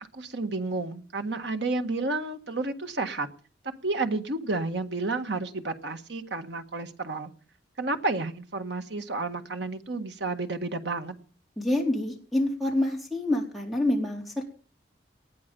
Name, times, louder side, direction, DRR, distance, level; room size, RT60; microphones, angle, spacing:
voice 1, 0.1-3.3 3.8-7.3 7.8-11.1, right 3 dB, 75° right, 7 dB, 1.7 m, -31 dB
voice 2, 11.6-14.5, left 1 dB, ahead, 1 dB, 4.2 m, -27 dB
19.5 x 11.5 x 5.4 m, 0.40 s
head